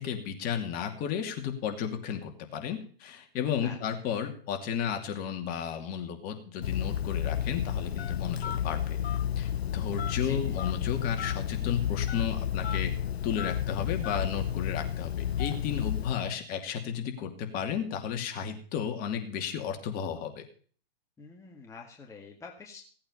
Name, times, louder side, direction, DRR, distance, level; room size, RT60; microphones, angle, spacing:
voice 1, 0.0-9.0 9.4-12.9 13.2-20.4, left 8 dB, 30° left, 5 dB, 2.7 m, -33 dB
Telephone, 6.6-16.3, left 9 dB, 85° left, 0.7 m, -31 dB
voice 2, 10.2-10.7 21.2-22.8, left 5 dB, 10° left, 1 dB, 2.0 m, -46 dB
17.5 x 8.7 x 5.7 m, 0.43 s
hypercardioid pair, 140°, 30 cm